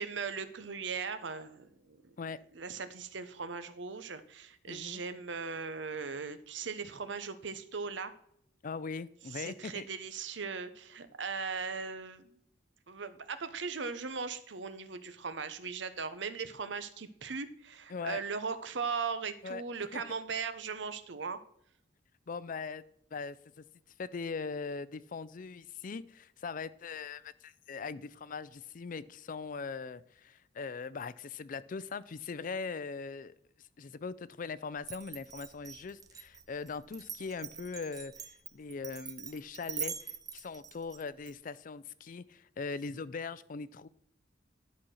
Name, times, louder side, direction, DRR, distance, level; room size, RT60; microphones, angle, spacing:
voice 1, 0.0-2.1 2.5-8.1 9.3-12.4 12.9-21.4, right 5 dB, 70° right, 12 dB, 0.8 m, -38 dB
voice 2, 4.7-5.0 8.6-9.9 17.9-18.2 19.4-19.6 19.9-20.0 22.3-22.8 23.1-23.6 24.0-33.3 33.8-38.1 38.5-43.9, left 4 dB, 45° left, 17 dB, 0.4 m, -40 dB
Glass, 34.8-41.3, right 7 dB, 20° right, 0.6 m, -43 dB
11.5 x 4.3 x 6.3 m, 0.70 s
head